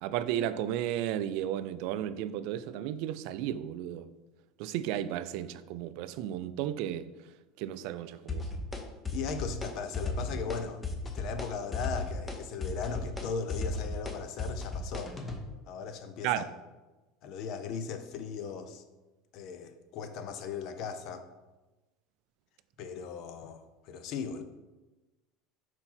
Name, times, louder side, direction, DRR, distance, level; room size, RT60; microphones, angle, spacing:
voice 1, 0.0-4.0 4.6-7.1 7.6-8.5 16.2-16.5, right 11 dB, 65° right, 0.3 m, -33 dB
sound 1, 8.3-8.8 9.1-9.7 9.9-10.6 10.8-11.5 11.7-15.4, left 3 dB, 20° left, 0.9 m, -34 dB
voice 2, 9.1-15.2 15.7-16.4 17.2-18.8 19.3-21.3 22.8-24.4, left 6 dB, 55° left, 0.7 m, -38 dB
4.4 x 4.4 x 5.7 m
supercardioid pair, 115°, 0 cm